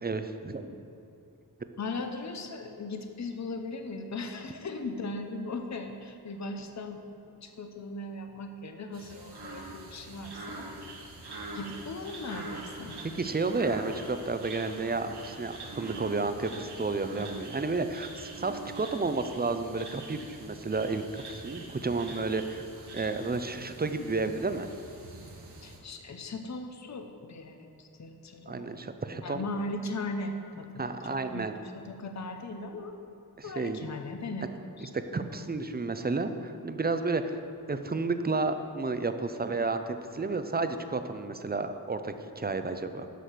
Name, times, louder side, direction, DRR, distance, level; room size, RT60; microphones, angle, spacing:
voice 1, 0.0-0.7 13.1-22.7 22.9-24.7 28.5-29.4 30.8-31.5 33.4-33.8 34.8-37.4 37.7-43.1, right 3 dB, 25° right, 9 dB, 0.6 m, -31 dB
voice 2, 1.8-10.7 11.5-13.0 25.6-28.7 29.2-31.0 31.3-31.5 31.7-32.9 33.4-34.5 34.8-34.9, left 2 dB, 45° left, 5 dB, 0.7 m, -38 dB
sound 1, 8.9-25.8, right 2 dB, 80° right, 1.5 m, -44 dB
8.2 x 6.3 x 5.9 m, 2.7 s
wide cardioid pair, 55°, 39 cm